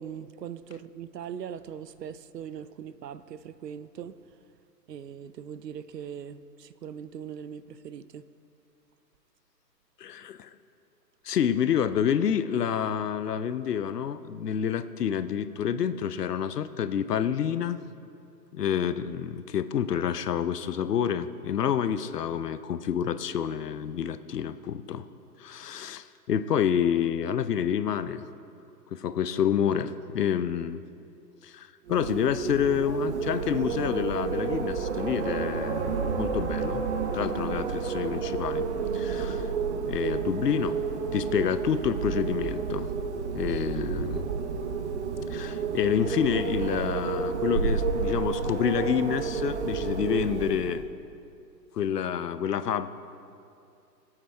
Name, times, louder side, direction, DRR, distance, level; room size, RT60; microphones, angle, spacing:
voice 1, 0.0-4.2 4.9-8.2, right 8 dB, 75° right, 0.6 m, -40 dB
voice 2, 10.0-10.5 11.2-17.8 18.5-25.1 25.4-28.2 28.9-30.8 31.4-36.8 37.1-38.7 38.9-39.5 39.9-40.8 41.1-42.9 43.3-44.3 45.3-50.8 51.7-52.9, left 8 dB, 70° left, 0.7 m, -28 dB
Wind, 31.9-50.9, right 5 dB, 45° right, 0.8 m, -30 dB
19.0 x 8.7 x 3.3 m
figure-of-eight pair, 135°, 50 cm